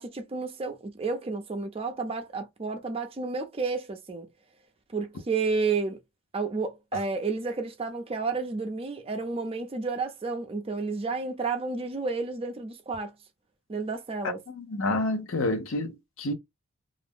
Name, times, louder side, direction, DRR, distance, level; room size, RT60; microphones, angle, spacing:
voice 1, 0.0-4.3 4.9-6.0 6.3-13.1 13.7-14.4, right 4 dB, 25° right, 0.4 m, -31 dB
voice 2, 14.5-16.3, left 2 dB, 65° left, 0.6 m, -29 dB
2.5 x 2.0 x 3.4 m
head